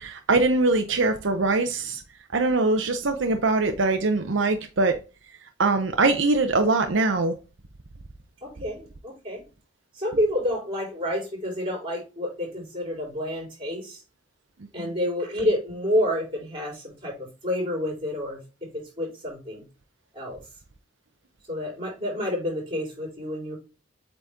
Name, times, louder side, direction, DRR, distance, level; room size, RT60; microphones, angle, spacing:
voice 1, 0.0-2.0 2.3-5.0 5.6-7.4 14.8-14.9, right 3 dB, 80° right, 0.7 m, -22 dB
voice 2, 8.4-9.4 9.9-14.0 14.7-19.7 20.1-20.5 21.5-23.6, left 1 dB, 30° right, 4.3 m, -29 dB
8.2 x 4.0 x 3.5 m
head